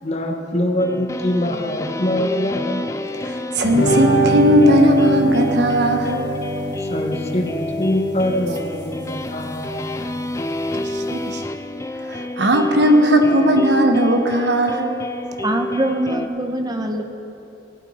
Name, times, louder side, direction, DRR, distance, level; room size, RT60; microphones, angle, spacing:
voice 1, 0.0-2.9 6.8-9.9, left 1 dB, 40° left, 3 dB, 1.1 m, -24 dB
sound 1, 0.8-16.3, left 1 dB, 15° left, 0.4 m, -29 dB
voice 2, 3.3-6.2 10.9-11.4 12.1-14.9, equal, 70° right, 5 dB, 1.1 m, -17 dB
sound 2, 3.6-11.4, right 1 dB, 70° left, 1.4 m, -24 dB
voice 3, 15.4-17.0, right 1 dB, 25° right, 4 dB, 0.9 m, -23 dB
16.0 x 11.5 x 4.3 m, 2.8 s
head